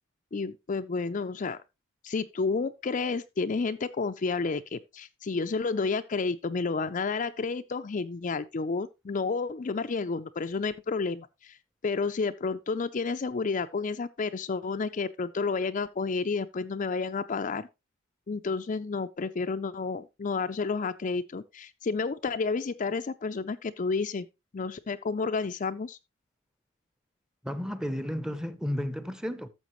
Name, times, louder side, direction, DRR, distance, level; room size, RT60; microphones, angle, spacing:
voice 1, 0.3-1.6 2.0-11.6 11.8-17.7 18.3-24.3 24.5-26.0, left 4 dB, 40° left, 0.4 m, -31 dB
voice 2, 27.4-29.5, equal, 5° right, 0.7 m, -32 dB
12.5 x 7.0 x 3.0 m
head